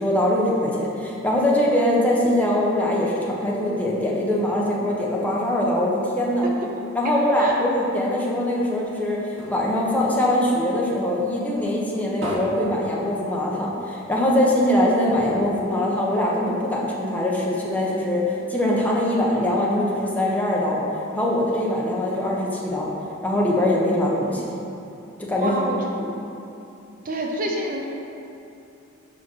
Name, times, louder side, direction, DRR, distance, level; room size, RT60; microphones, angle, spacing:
voice 1, 0.0-6.5 6.9-20.8 21.1-22.9 23.2-24.4 25.2-25.6, left 1 dB, 10° left, -4 dB, 1.0 m, -22 dB
voice 2, 7.0-7.5 25.4-25.9 27.0-27.9, right 1 dB, 40° right, 0 dB, 0.6 m, -28 dB
sound 1, 8.5-11.1 11.5-13.7 14.1-14.2 14.5-14.6 15.0-16.6 17.2-17.3, equal, 65° right, 1.7 m, -36 dB
5.5 x 5.1 x 6.2 m, 2.8 s
head